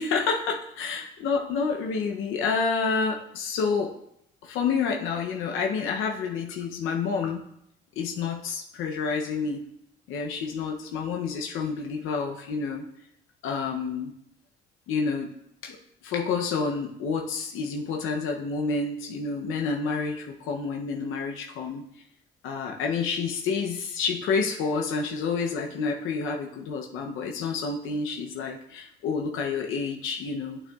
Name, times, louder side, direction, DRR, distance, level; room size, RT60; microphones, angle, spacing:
voice 1, 0.0-3.9 4.4-7.5 8.0-9.6 10.1-12.9 13.4-14.1 14.9-15.3 15.6-15.8 16.0-21.8 22.4-30.6, left 5 dB, 90° left, 1 dB, 0.7 m, -29 dB
8.7 x 6.6 x 2.3 m, 0.76 s
cardioid pair, 90°, 20 cm